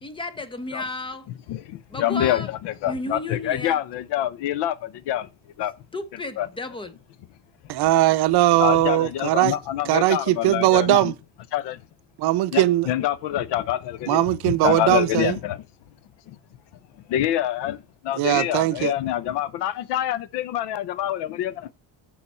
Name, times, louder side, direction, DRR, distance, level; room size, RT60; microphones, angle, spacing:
voice 1, 0.0-1.3 1.9-2.5 2.9-3.8 5.9-7.0, left 2 dB, 15° left, 0.6 m, -33 dB
voice 2, 1.5-5.3 5.6-5.7 6.4-6.5 8.6-11.1 11.5-11.8 12.5-15.6 17.1-17.8 18.0-21.7, left 12 dB, 85° left, 0.7 m, -26 dB
voice 3, 7.7-9.6 9.8-11.1 12.2-12.9 14.1-15.4 18.2-18.9, right 16 dB, 70° right, 0.7 m, -20 dB
6.8 x 5.7 x 4.2 m
cardioid pair, 165°, 40 cm